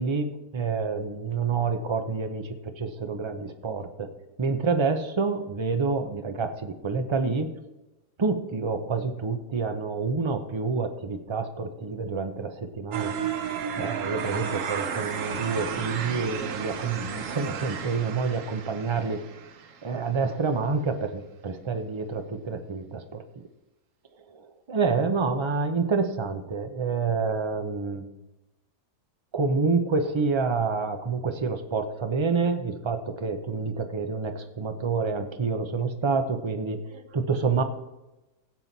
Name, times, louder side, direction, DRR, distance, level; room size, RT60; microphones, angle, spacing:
voice 1, 0.0-4.1 4.4-7.5 8.2-13.1 13.8-19.2 19.8-23.2 24.3-28.1 29.3-37.6, right 4 dB, 30° right, 6 dB, 0.5 m, -28 dB
sound 1, 12.9-19.9, right 7 dB, 55° right, 1.0 m, -33 dB
16.5 x 7.6 x 4.2 m, 1.0 s
omnidirectional pair, 1.8 m